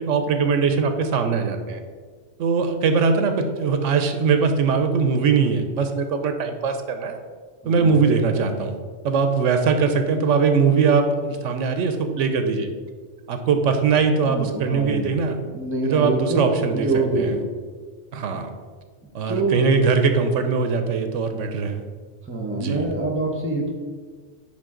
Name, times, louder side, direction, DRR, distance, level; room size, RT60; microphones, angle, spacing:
voice 1, 0.0-1.8 2.4-7.2 7.6-8.8 9.0-12.7 13.3-15.4 15.8-16.9 17.1-17.3 18.1-18.5 19.1-21.8 22.6-22.9, right 5 dB, 85° right, 7 dB, 1.0 m, -21 dB
voice 2, 7.6-8.0 14.3-17.5 19.3-19.7 22.3-23.7, right 2 dB, 10° right, 2 dB, 0.8 m, -25 dB
9.8 x 3.6 x 3.8 m, 1.5 s
omnidirectional pair, 1.2 m